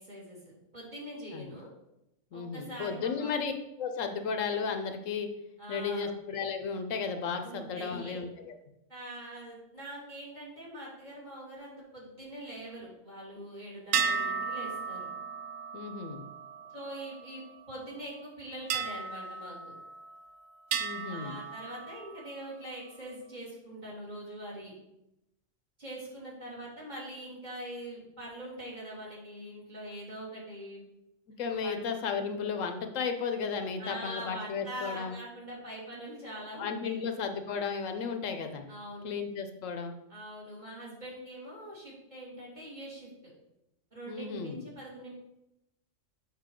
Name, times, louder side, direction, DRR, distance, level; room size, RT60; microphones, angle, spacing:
voice 1, 0.0-1.7 2.3-3.3 5.6-6.1 7.4-8.2 8.9-15.1 16.7-17.4 17.7-19.7 21.1-24.7 25.8-30.8 31.6-31.8 33.8-37.1 38.7-39.1 40.1-43.3 43.9-45.1, right 1 dB, 35° right, -5 dB, 2.4 m, -43 dB
voice 2, 2.3-3.5 3.8-5.3 5.7-8.3 15.7-16.2 20.8-21.4 31.4-35.1 36.6-38.6 39.0-39.9 44.1-44.6, left 5 dB, 75° left, 6 dB, 1.1 m, -34 dB
sound 1, 13.9-17.6 18.7-20.2 20.7-22.4, right 6 dB, 85° right, 1.1 m, -35 dB
7.4 x 5.3 x 3.7 m, 0.87 s
omnidirectional pair, 1.4 m